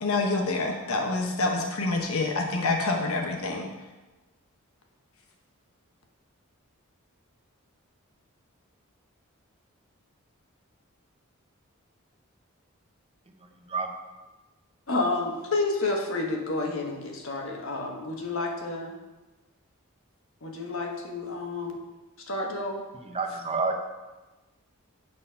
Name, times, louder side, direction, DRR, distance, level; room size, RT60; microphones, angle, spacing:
voice 1, 0.0-3.7, left 3 dB, 85° left, 2 dB, 1.0 m, -27 dB
voice 2, 14.9-19.0 20.4-21.8 22.3-22.8, left 2 dB, 65° left, 1 dB, 1.3 m, -30 dB
voice 3, 23.1-23.8, right 4 dB, 30° right, 4 dB, 0.8 m, -28 dB
8.8 x 4.1 x 5.6 m, 1.1 s
head